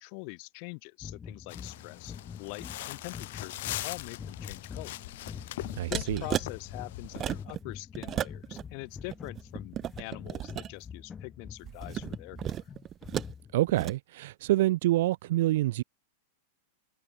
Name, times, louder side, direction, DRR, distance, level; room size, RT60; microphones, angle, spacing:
voice 1, 0.0-5.0 5.9-12.6, left 40 dB or more, 50° left, 1.9 m, -43 dB
sound 1, 1.0-13.7, left 7 dB, 20° left, 1.7 m, -45 dB
sound 2, 1.5-7.4, left 16 dB, 65° left, 1.1 m, -41 dB
voice 2, 5.8-6.2 13.5-15.8, right 16 dB, 65° right, 0.3 m, -27 dB
sound 3, 5.9-6.5 7.0-7.6 7.9-8.6 9.0-10.7 11.6-13.3 13.7-13.9, right 11 dB, 25° right, 1.3 m, -34 dB
supercardioid pair, 140°, 0 cm